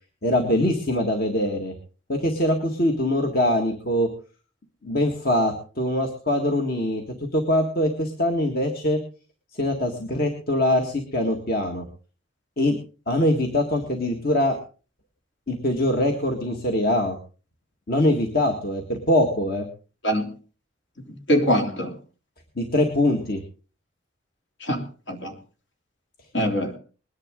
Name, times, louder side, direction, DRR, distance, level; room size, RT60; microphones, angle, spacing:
voice 1, 0.2-1.7 2.1-4.1 4.8-7.0 7.3-9.0 9.6-11.8 12.6-12.8 13.1-14.6 15.5-17.2 17.9-19.7 22.6-23.4, left 1 dB, 50° left, 3 dB, 1.9 m, -23 dB
voice 2, 21.1-22.0 24.6-25.3 26.3-26.8, equal, 70° left, 3 dB, 3.2 m, -24 dB
21.0 x 10.5 x 3.8 m, 0.36 s
head